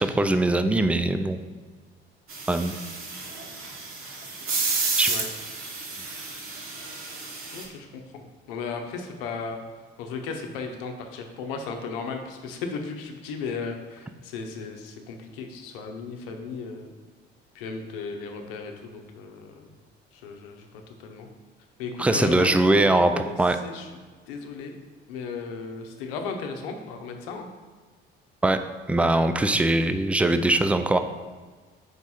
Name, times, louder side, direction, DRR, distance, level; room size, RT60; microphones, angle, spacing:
voice 1, 0.0-1.4 2.5-2.7 5.0-5.1 22.0-23.1 23.4-23.6 28.4-28.6 28.9-31.0, right 2 dB, 5° right, 9 dB, 0.3 m, -21 dB
sound 1, 2.3-7.6, right 3 dB, 45° right, 1.4 m, -31 dB
voice 2, 7.5-9.6 10.0-16.9 17.5-19.7 20.1-21.3 21.8-23.9 24.3-24.8 25.1-27.5, left 4 dB, 70° left, 4 dB, 0.8 m, -35 dB
5.1 x 4.6 x 4.2 m, 1.4 s
figure-of-eight pair, 55°, 30 cm